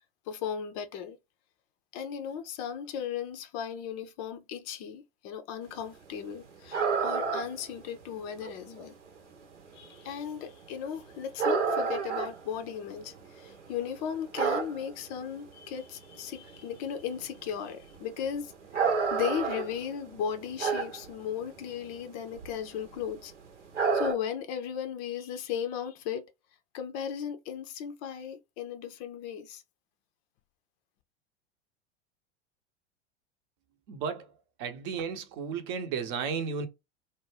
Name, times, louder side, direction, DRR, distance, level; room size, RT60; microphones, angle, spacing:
voice 1, 0.3-1.2 1.9-9.0 9.7-23.3 23.9-26.3 26.7-29.6, left 8 dB, 40° left, 0.5 m, -36 dB
sound 1, 6.7-7.6 8.0-8.1 8.4-8.8 9.8-10.1 10.6-10.8 11.4-13.5 13.8-15.1 15.6-15.7 16.1-16.2 16.5-16.8 17.1-17.3 17.9-21.1 21.4-21.6 22.2-22.5 22.8-23.1 23.7-24.1, right 5 dB, 85° right, 0.9 m, -29 dB
voice 2, 33.9-36.7, right 6 dB, 45° right, 0.7 m, -34 dB
2.5 x 2.2 x 3.2 m
figure-of-eight pair, 85°, 34 cm